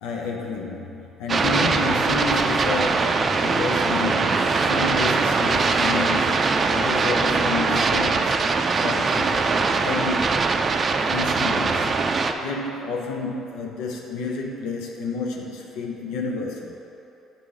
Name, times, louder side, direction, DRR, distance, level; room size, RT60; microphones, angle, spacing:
voice 1, 0.0-6.4 6.7-8.4 8.8-9.4 9.7-10.4 11.0-16.8, left 4 dB, 75° left, 0 dB, 0.6 m, -30 dB
sound 1, 1.3-12.3, right 4 dB, 40° right, 0.4 m, -22 dB
7.4 x 3.7 x 4.8 m, 2.9 s
hypercardioid pair, 60°, 0 cm